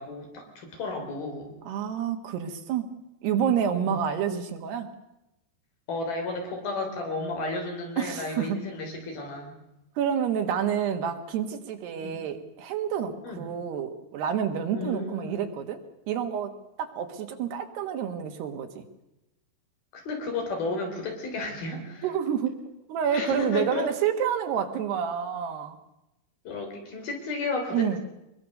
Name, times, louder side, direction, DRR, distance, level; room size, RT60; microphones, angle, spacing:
voice 1, 0.0-1.6 3.7-4.1 5.9-9.6 12.0-12.2 13.2-13.5 14.7-15.4 19.9-22.1 23.1-23.9 26.5-28.0, left 2 dB, 60° left, 3 dB, 5.5 m, -33 dB
voice 2, 1.7-2.9 3.2-4.9 8.0-8.6 10.0-18.8 22.0-22.6 22.9-25.8 27.7-28.0, right 8 dB, 70° right, 6 dB, 3.6 m, -28 dB
23.5 x 22.0 x 6.6 m, 0.89 s
omnidirectional pair, 5.0 m